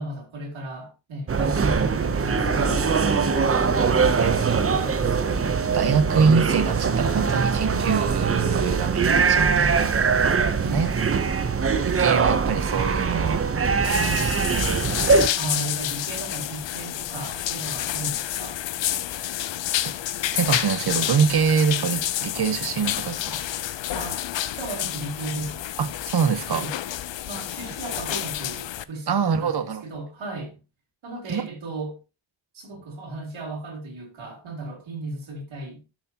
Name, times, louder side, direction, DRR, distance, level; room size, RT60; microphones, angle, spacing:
voice 1, 0.0-2.9 3.7-5.5 10.6-11.0 15.4-18.6 23.9-25.7 26.5-26.7 27.3-30.6 31.0-32.0 32.5-35.8, right 2 dB, 80° right, 3.0 m, -35 dB
sound 1, 1.3-15.3, right 5 dB, 30° right, 0.6 m, -22 dB
Gong, 2.3-12.1 13.0-13.3, equal, 15° left, 1.6 m, -37 dB
voice 2, 4.2-4.6 5.7-9.8 10.7-10.9 11.8-13.4 13.8-14.6 19.8-19.9 20.3-23.4 25.8-26.6 29.1-29.8 31.3-31.5, right 6 dB, 55° right, 1.0 m, -24 dB
sound 2, 13.8-28.8, left 12 dB, 65° left, 0.6 m, -29 dB
12.0 x 6.5 x 2.8 m
wide cardioid pair, 150°, 47 cm